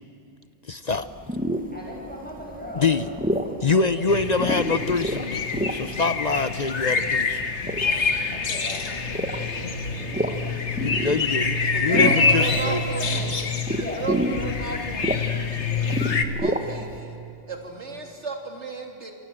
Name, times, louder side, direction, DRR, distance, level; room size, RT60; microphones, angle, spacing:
voice 1, 0.7-1.1 2.8-3.0 3.6-7.5 10.8-12.8, left 4 dB, 40° left, 12 dB, 0.8 m, -25 dB
sound 1, 0.9-17.0, right 1 dB, 5° right, 1.4 m, -31 dB
voice 2, 1.7-4.2 7.8-8.0 8.3-10.3 11.9-13.3 13.7-14.1 15.6-16.2, left 1 dB, 10° left, -3 dB, 8.0 m, -38 dB
sound 2, 4.1-16.2, left 4 dB, 75° left, 1.8 m, -26 dB
voice 3, 11.6-13.2 13.7-15.3 16.4-17.2 17.5-19.1, right 4 dB, 75° right, 3 dB, 3.5 m, -34 dB
28.5 x 27.0 x 7.8 m, 2.8 s
omnidirectional pair, 1.2 m